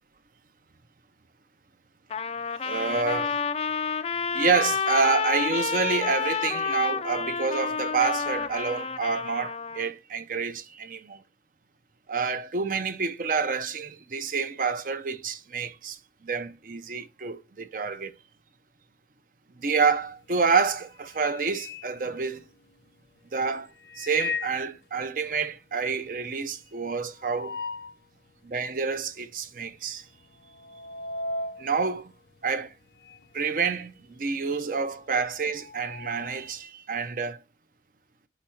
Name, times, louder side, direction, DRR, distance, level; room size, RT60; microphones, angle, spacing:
Trumpet, 2.1-9.9, left 6 dB, 35° left, 0.3 m, -29 dB
voice 1, 2.6-3.4 4.3-11.2 12.1-16.0 16.2-18.1 19.6-22.4 23.3-27.6 28.4-30.1 31.6-32.1 32.4-32.7 33.3-37.4, right 5 dB, 50° right, 0.6 m, -28 dB
sound 1, 20.0-20.3 20.7-22.8 23.8-24.7 25.1-25.2 25.4-25.5 25.9-28.1 28.5-28.6 29.4-29.7 30.0-33.3 33.6-36.6, left 3 dB, 70° left, 0.7 m, -38 dB
5.1 x 4.2 x 4.4 m
head